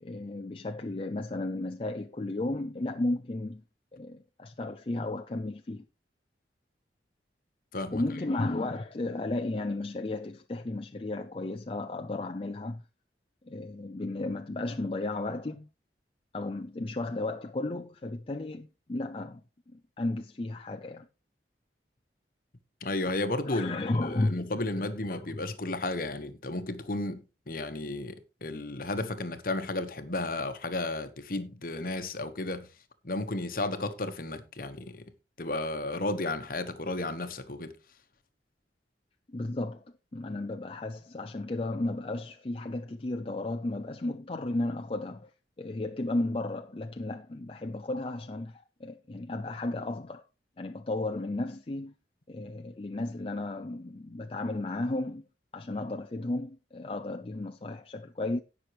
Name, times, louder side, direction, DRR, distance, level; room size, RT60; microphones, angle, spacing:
voice 1, 0.0-3.6 3.9-5.9 7.9-12.8 13.4-15.7 16.3-19.4 19.7-21.1 23.5-24.4 24.7-24.8 25.1-25.5 39.3-39.9 40.1-45.3 45.6-50.2 50.6-51.9 52.3-55.2 55.5-58.4, left 2 dB, 30° left, 0.5 m, -34 dB
voice 2, 22.8-32.7 33.0-35.0 35.4-37.7, left 2 dB, 50° left, 1.2 m, -33 dB
18.0 x 6.2 x 3.1 m
head